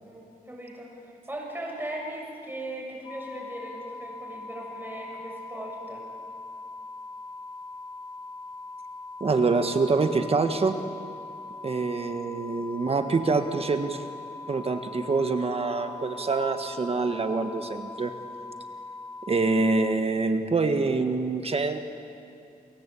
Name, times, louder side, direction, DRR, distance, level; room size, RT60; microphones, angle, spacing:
voice 1, 0.0-6.1, right 1 dB, 15° right, -1 dB, 7.3 m, -38 dB
sound 1, 3.0-19.9, left 3 dB, 30° left, 4.1 m, -41 dB
voice 2, 9.2-10.7 11.6-14.0 14.5-18.2 19.3-21.8, right 3 dB, 40° right, 7 dB, 1.5 m, -25 dB
29.5 x 23.0 x 8.5 m, 2.5 s
wide cardioid pair, 125°, 16 cm